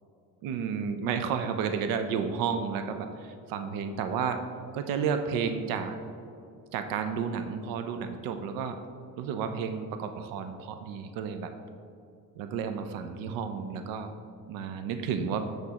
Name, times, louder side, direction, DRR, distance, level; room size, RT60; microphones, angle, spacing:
voice 1, 0.4-4.4 4.7-5.9 6.7-8.8 9.2-11.5 12.4-14.1 14.5-15.5, right 6 dB, 85° right, 7 dB, 0.5 m, -32 dB
6.6 x 6.1 x 2.9 m, 2.5 s
cardioid pair, 145°, 33 cm